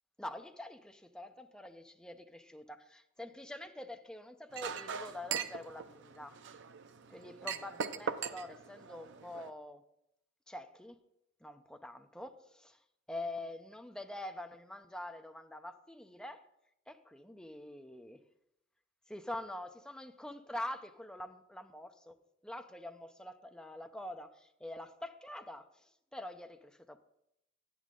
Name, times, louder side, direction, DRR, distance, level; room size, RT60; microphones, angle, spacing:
voice 1, 0.2-6.3 7.1-9.8 10.5-11.0 11.4-12.8 13.1-16.4 16.9-18.2 19.1-22.2 22.4-27.0, left 1 dB, 5° left, 0.5 m, -45 dB
Chink clink, 4.5-9.5, right 6 dB, 60° right, 0.5 m, -41 dB
10.5 x 9.3 x 3.7 m
head